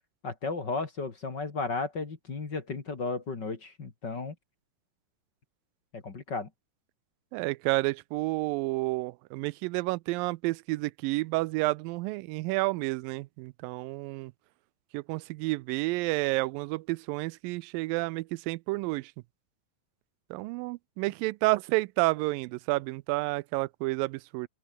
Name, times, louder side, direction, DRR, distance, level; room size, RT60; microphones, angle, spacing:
voice 1, 0.2-4.3 5.9-6.5, left 3 dB, 35° left, 2.8 m, -34 dB
voice 2, 7.3-14.3 14.9-19.1 20.3-24.5, right 22 dB, 90° right, 2.3 m, -30 dB
open air
omnidirectional pair, 3.9 m